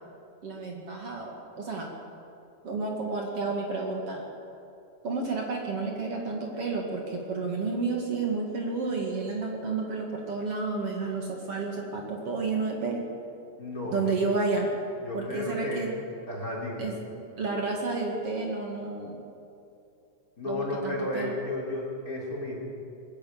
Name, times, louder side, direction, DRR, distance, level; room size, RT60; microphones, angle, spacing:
voice 1, 0.4-1.9 2.6-4.3 5.0-13.1 13.9-14.7 15.1-15.9 16.8-19.2 20.5-21.4, right 3 dB, 50° right, 0 dB, 3.1 m, -31 dB
voice 2, 13.6-14.1 15.0-15.8 16.3-16.9 20.4-22.6, left 1 dB, 25° left, -2 dB, 4.1 m, -33 dB
21.5 x 14.5 x 8.9 m, 2.6 s
omnidirectional pair, 3.5 m